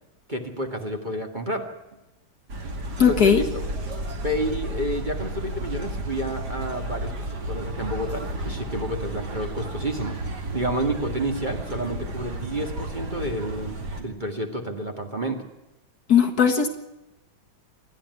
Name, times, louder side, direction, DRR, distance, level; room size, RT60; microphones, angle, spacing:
voice 1, 0.3-1.7 3.1-3.7 4.2-10.2 10.5-15.4, right 1 dB, 25° right, 4 dB, 2.0 m, -30 dB
sound 1, 2.5-14.0, right 1 dB, 55° right, 3.0 m, -32 dB
voice 2, 3.0-3.4 16.1-16.7, left 7 dB, 50° left, 5 dB, 1.9 m, -18 dB
27.5 x 10.5 x 9.5 m, 0.98 s
omnidirectional pair, 2.2 m